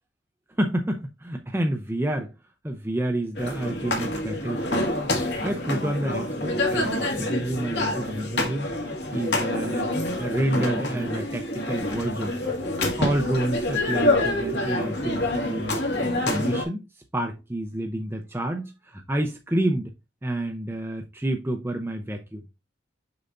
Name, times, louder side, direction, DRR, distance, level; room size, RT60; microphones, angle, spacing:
voice 1, 0.6-2.3 2.6-4.9 5.4-8.7 9.1-9.9 10.2-12.3 13.0-15.8 16.2-16.9 17.1-19.9 20.2-22.4, right 1 dB, 15° right, 0.6 m, -29 dB
sound 1, 3.4-16.6, left 1 dB, 65° left, 1.9 m, -27 dB
6.7 x 5.5 x 2.5 m
head